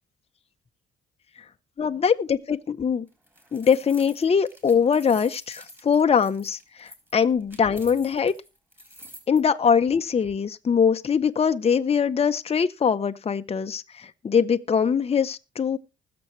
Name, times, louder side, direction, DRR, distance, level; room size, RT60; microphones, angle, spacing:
voice 1, 1.8-3.1 3.5-8.3 9.3-15.8, left 6 dB, 30° left, 0.7 m, -22 dB
sound 1, 3.1-9.4, equal, 10° right, 3.7 m, -48 dB
20.5 x 7.0 x 3.1 m
cardioid pair, 90°, 20 cm